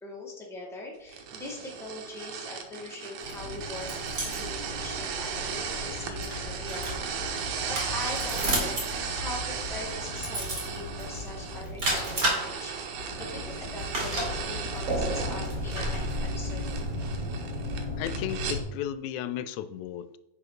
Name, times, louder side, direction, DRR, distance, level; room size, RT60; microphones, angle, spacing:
voice 1, 0.0-3.9 4.2-12.9 13.2-17.1, left 2 dB, ahead, -2 dB, 1.5 m, -42 dB
sound 1, 1.1-18.6, right 7 dB, 80° right, 2.4 m, -37 dB
sound 2, 3.2-18.6, equal, 30° right, 2.9 m, -33 dB
voice 2, 18.0-20.2, left 10 dB, 85° left, 14 dB, 1.9 m, -34 dB
9.9 x 5.1 x 5.0 m, 0.94 s
omnidirectional pair, 3.3 m